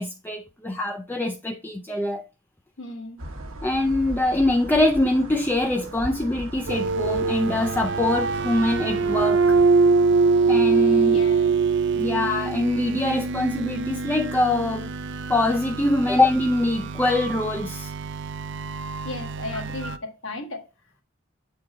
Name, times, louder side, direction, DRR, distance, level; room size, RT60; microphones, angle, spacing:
voice 1, 0.0-2.3 3.6-9.6 10.5-11.3 11.9-14.9 15.3-17.9 19.5-20.0, left 2 dB, 10° left, 0.4 m, -24 dB
voice 2, 2.8-3.2 11.1-11.5 19.0-20.7, left 2 dB, 65° left, 1.7 m, -35 dB
sound 1, 3.2-9.6, right 1 dB, 80° right, 1.0 m, -39 dB
sound 2, 6.7-20.0, right 4 dB, 60° right, 0.4 m, -24 dB
7.6 x 4.5 x 3.7 m
head